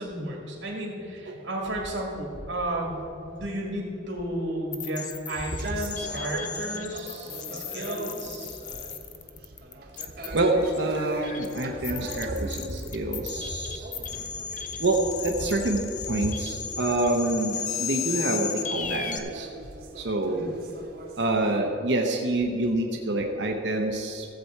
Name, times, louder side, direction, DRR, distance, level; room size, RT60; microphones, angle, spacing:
voice 1, 0.0-8.6 20.3-20.6, right 1 dB, 85° right, -2 dB, 2.0 m, -33 dB
sound 1, 4.7-19.2, left 7 dB, 40° left, 0.6 m, -35 dB
sound 2, 5.3-21.6, right 1 dB, 50° right, 1.3 m, -39 dB
voice 2, 10.3-13.9 14.8-19.5 20.0-20.5 21.2-24.3, right 2 dB, 70° right, 1 dB, 0.9 m, -27 dB
14.5 x 7.8 x 4.6 m, 2.7 s
head